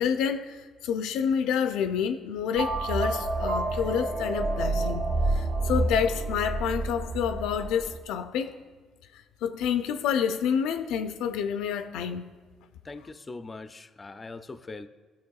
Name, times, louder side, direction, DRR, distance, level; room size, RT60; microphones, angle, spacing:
voice 1, 0.0-8.6 9.4-12.2, left 7 dB, 90° left, 0.4 m, -28 dB
sound 1, 2.5-8.0, right 2 dB, 85° right, 1.9 m, -29 dB
voice 2, 12.9-14.9, left 3 dB, 25° left, 0.4 m, -41 dB
14.5 x 5.9 x 2.3 m
cardioid pair, 100°, 0 cm